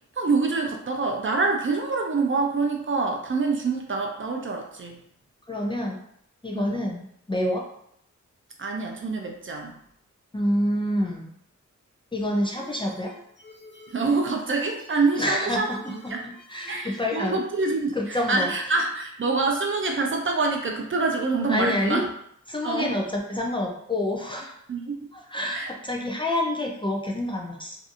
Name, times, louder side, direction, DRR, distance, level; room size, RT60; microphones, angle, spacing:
voice 1, 0.2-5.0 6.5-6.8 8.6-9.8 13.9-16.3 16.7-22.1 22.6-22.9 24.7-24.9 25.5-25.7, right 3 dB, 40° right, 2 dB, 0.5 m, -26 dB
voice 2, 5.5-6.0 6.4-7.6 10.3-11.3 12.1-13.1 15.2-15.8 16.0-17.4 18.0-18.5 21.5-22.0 22.5-24.5 25.1-27.8, left 1 dB, 15° left, -2 dB, 0.4 m, -27 dB
sound 1, 12.3-17.2, left 2 dB, 35° left, 1.1 m, -49 dB
2.6 x 2.5 x 2.5 m, 0.70 s
wide cardioid pair, 80°, 31 cm